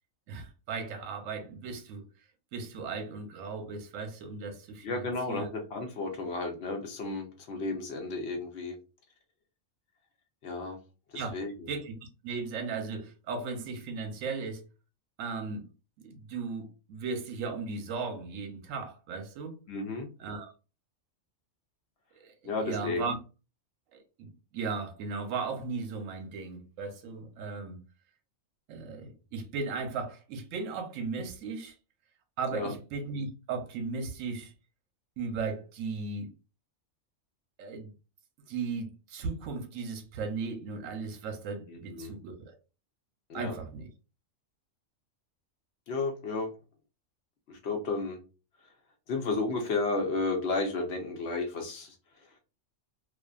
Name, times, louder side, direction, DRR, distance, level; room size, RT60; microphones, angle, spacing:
voice 1, 0.3-2.1 2.5-5.5 11.1-11.3 11.7-14.6 15.2-15.7 16.0-19.6 20.2-20.5 22.2-23.2 23.9-27.8 28.7-31.7 32.4-34.5 35.2-36.3 37.6-37.9 38.5-42.6 43.3-43.9, right 4 dB, 85° right, 1.0 m, -36 dB
voice 2, 4.8-8.8 10.4-10.8 11.1-11.5 19.7-20.1 22.4-23.0 32.5-32.7 41.7-42.1 43.3-43.5 45.9-46.5 47.5-48.2 49.1-51.9, left 3 dB, 65° left, 0.8 m, -32 dB
2.5 x 2.4 x 2.2 m
omnidirectional pair, 1.3 m